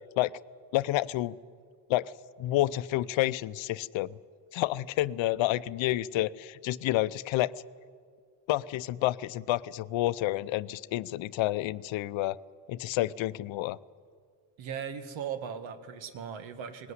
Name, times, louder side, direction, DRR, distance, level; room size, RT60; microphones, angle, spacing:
voice 1, 0.7-1.3 1.9-2.1 2.4-4.1 4.5-7.5 8.5-12.4 12.7-13.8, left 16 dB, 75° left, 17 dB, 0.7 m, -29 dB
voice 2, 14.6-16.9, right 7 dB, 75° right, 10 dB, 1.7 m, -38 dB
19.5 x 18.0 x 9.7 m, 2.1 s
cardioid pair, 85°, 46 cm